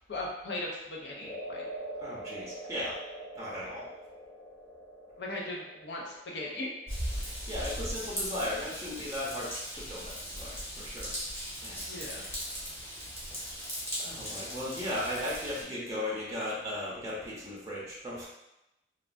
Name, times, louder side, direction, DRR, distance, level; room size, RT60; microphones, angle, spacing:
voice 1, 0.1-1.7 5.2-6.7 11.9-12.3, left 2 dB, 70° left, -2 dB, 0.6 m, -38 dB
sound 1, 1.2-9.6, right 1 dB, 35° left, 0.7 m, -45 dB
voice 2, 2.0-3.0 3.3-3.9 7.1-11.1 11.6-11.8 13.5-13.7 14.0-18.3, left 1 dB, 20° right, -7 dB, 0.7 m, -37 dB
Raindrop / Vehicle horn car horn honking / Trickle dribble, 6.9-15.6, equal, 15° left, 1.0 m, -38 dB
3.1 x 2.3 x 2.5 m, 0.90 s
head